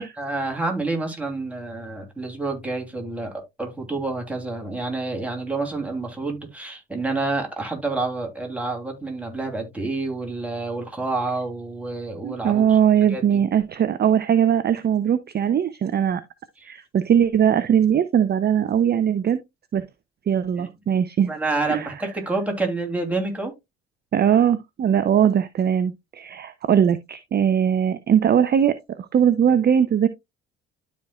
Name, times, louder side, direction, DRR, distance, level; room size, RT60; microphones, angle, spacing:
voice 1, 0.0-12.8 13.1-13.4 20.6-20.7 21.3-23.5, right 3 dB, 5° right, 2.9 m, -28 dB
voice 2, 12.2-16.2 16.6-19.4 19.7-19.8 20.3-21.3 21.7-21.9 24.1-30.1, right 8 dB, 30° right, 0.6 m, -20 dB
12.5 x 4.4 x 2.3 m
figure-of-eight pair, 50°, 31 cm